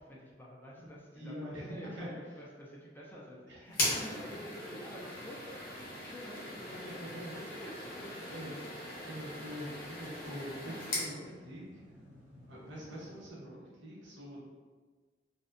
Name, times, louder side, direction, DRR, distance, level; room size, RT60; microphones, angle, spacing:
voice 1, 0.0-6.6 7.0-7.1 7.5-8.7 10.7-11.1, equal, 10° left, -4 dB, 0.4 m, -49 dB
voice 2, 1.1-2.1 3.5-3.8 4.1-4.2 6.5-7.5 8.2-11.6 12.5-14.5, equal, 85° right, -5 dB, 0.8 m, -45 dB
sound 1, 3.7-11.1, left 1 dB, 50° left, 0.8 m, -39 dB
sound 2, 4.1-13.3, equal, 10° right, 0.7 m, -57 dB
2.6 x 2.1 x 2.4 m, 1.4 s
head